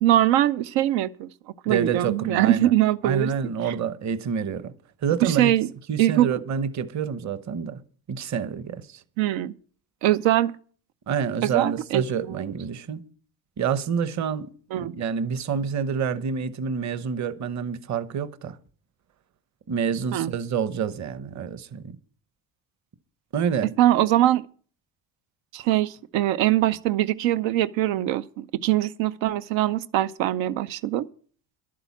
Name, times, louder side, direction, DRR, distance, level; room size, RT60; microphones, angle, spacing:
voice 1, 0.0-1.3 1.6-3.3 3.6-3.7 5.2-5.7 6.0-6.3 9.2-9.5 10.0-10.5 11.4-12.4 14.7-14.9 20.1-20.3 23.8-24.4 25.5-31.1, right 13 dB, 85° right, 0.7 m, -22 dB
voice 2, 1.7-2.7 3.0-4.7 5.0-5.5 5.9-7.8 8.1-9.0 11.1-13.0 13.6-18.6 19.7-22.0 23.3-23.7, right 7 dB, 40° right, 0.9 m, -28 dB
11.5 x 8.7 x 7.2 m
cardioid pair, 135°, 44 cm